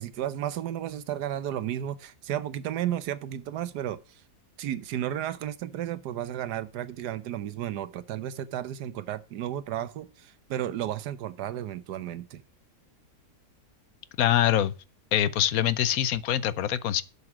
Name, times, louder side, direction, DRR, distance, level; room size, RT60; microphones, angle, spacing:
voice 1, 0.0-4.2 4.6-12.4, right 11 dB, 85° right, 1.4 m, -33 dB
voice 2, 14.2-14.7 15.1-17.0, left 11 dB, 70° left, 1.1 m, -24 dB
8.0 x 7.1 x 6.0 m
omnidirectional pair, 1.7 m